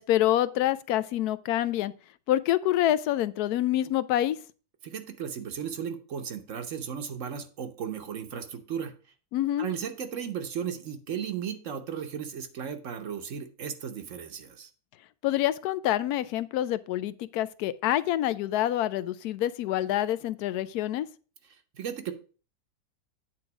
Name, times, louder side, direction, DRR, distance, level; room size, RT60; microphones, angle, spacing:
voice 1, 0.0-1.9 2.3-4.4 9.3-9.7 15.2-21.1, left 13 dB, 90° left, 1.1 m, -26 dB
voice 2, 4.8-8.9 9.6-14.7 21.7-22.1, right 8 dB, 60° right, 1.2 m, -35 dB
8.9 x 3.9 x 5.9 m
omnidirectional pair, 1.6 m